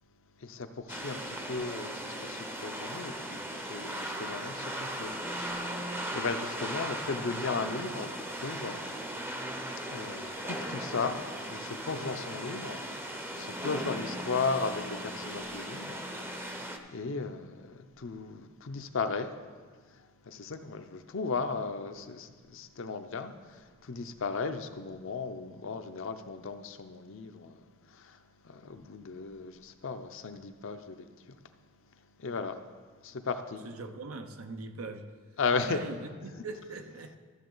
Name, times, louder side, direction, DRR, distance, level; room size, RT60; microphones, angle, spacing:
voice 1, 0.4-8.8 9.9-11.2 11.5-12.8 13.4-19.3 19.9-27.6 27.9-28.2 28.4-31.3 32.2-32.6 33.0-33.6 35.4-35.8, left 4 dB, 65° left, 7 dB, 0.6 m, -36 dB
sound 1, 0.9-16.8, right 1 dB, 10° right, 0.6 m, -38 dB
voice 2, 33.6-35.0 35.6-37.2, right 3 dB, 85° right, 7 dB, 0.8 m, -40 dB
13.0 x 7.3 x 3.9 m, 1.5 s
head